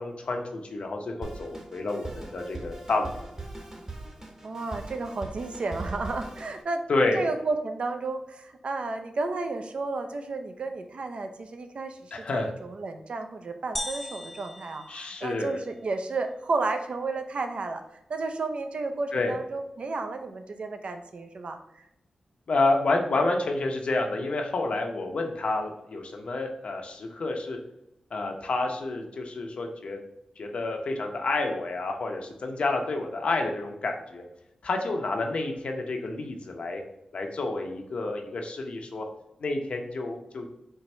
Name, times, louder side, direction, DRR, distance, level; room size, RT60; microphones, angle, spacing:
voice 1, 0.0-3.1 6.9-7.2 12.1-12.5 14.9-15.6 19.1-19.4 22.5-27.6 28.1-30.0 30.4-34.3 34.6-36.8 37.1-39.1 39.4-40.5, left 2 dB, 65° left, 3 dB, 0.8 m, -29 dB
Drum kit, 1.2-6.6, right 2 dB, 25° right, 0.9 m, -40 dB
voice 2, 4.4-6.8 7.1-17.8 18.1-21.8, right 3 dB, 60° right, 6 dB, 0.5 m, -32 dB
sound 1, 13.8-15.7, left 1 dB, 5° left, 0.3 m, -38 dB
4.5 x 2.6 x 4.2 m, 0.84 s
cardioid pair, 65°, 2 cm